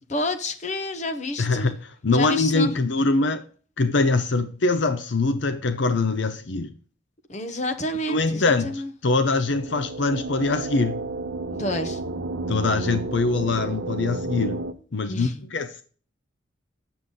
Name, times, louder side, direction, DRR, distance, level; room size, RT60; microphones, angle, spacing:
voice 1, 0.1-1.8 2.1-2.7 7.3-8.9 11.6-12.0 15.1-15.4, left 1 dB, 35° left, 0.9 m, -29 dB
voice 2, 1.4-3.4 3.8-6.7 8.1-11.0 12.5-14.6 14.9-15.8, left 3 dB, 65° left, 0.6 m, -23 dB
sound 1, 9.2-14.7, right 3 dB, 70° right, 0.7 m, -31 dB
7.9 x 6.9 x 3.8 m
head